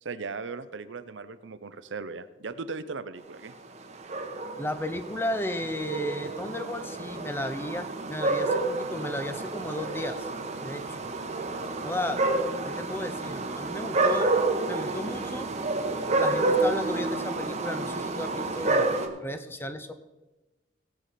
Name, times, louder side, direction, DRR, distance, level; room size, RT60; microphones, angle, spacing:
voice 1, 0.0-3.5, right 4 dB, 80° right, 13 dB, 0.6 m, -38 dB
sound 1, 3.9-19.1, right 2 dB, 40° right, 1.0 m, -29 dB
voice 2, 4.6-10.3 10.6-11.1 11.8-12.2 12.7-14.4 14.7-15.5 16.2-18.9 19.2-19.9, left 1 dB, 10° left, 10 dB, 0.6 m, -34 dB
17.0 x 7.6 x 4.2 m, 1.1 s
head